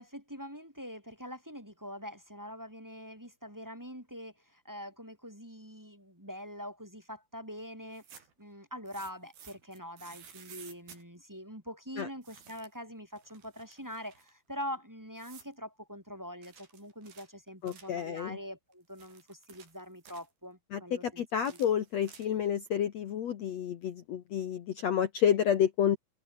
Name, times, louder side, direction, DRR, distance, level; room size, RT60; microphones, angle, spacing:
voice 1, 0.0-8.0 8.4-21.6, equal, 5° right, 2.7 m, -44 dB
sound 1, 7.8-8.4 8.9-11.0 12.2-12.8 13.1-14.3 15.2-15.6 16.4-18.0 18.7-20.3 21.3-22.6, right 7 dB, 60° right, 5.7 m, -54 dB
voice 2, 17.6-18.4 20.7-26.0, left 9 dB, 70° left, 1.6 m, -30 dB
omnidirectional pair, 4.8 m